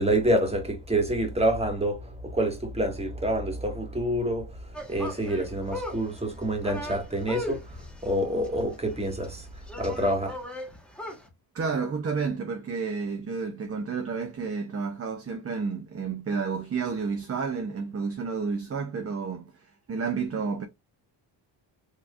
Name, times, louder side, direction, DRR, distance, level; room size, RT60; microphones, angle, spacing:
voice 1, 0.0-10.4, right 1 dB, 15° right, 1.7 m, -27 dB
sound 1, 4.7-11.3, left 1 dB, ahead, 1.3 m, -38 dB
voice 2, 11.5-20.7, right 5 dB, 30° right, 0.7 m, -31 dB
4.9 x 3.2 x 2.4 m
cardioid pair, 95°, 46 cm